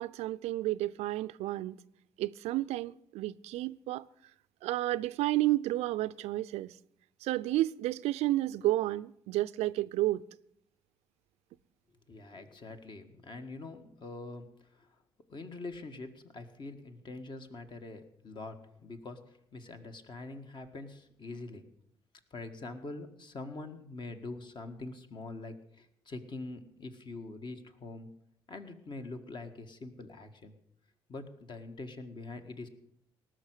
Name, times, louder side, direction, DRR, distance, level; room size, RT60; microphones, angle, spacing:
voice 1, 0.0-1.8 2.2-4.0 4.6-6.7 7.2-10.2, right 16 dB, 65° right, 0.5 m, -31 dB
voice 2, 12.1-14.5 14.8-14.9 15.3-21.6 22.3-28.1 28.5-30.5 31.1-32.7, left 3 dB, 40° left, 1.8 m, -44 dB
18.5 x 6.4 x 8.2 m
hypercardioid pair, 50°, 12 cm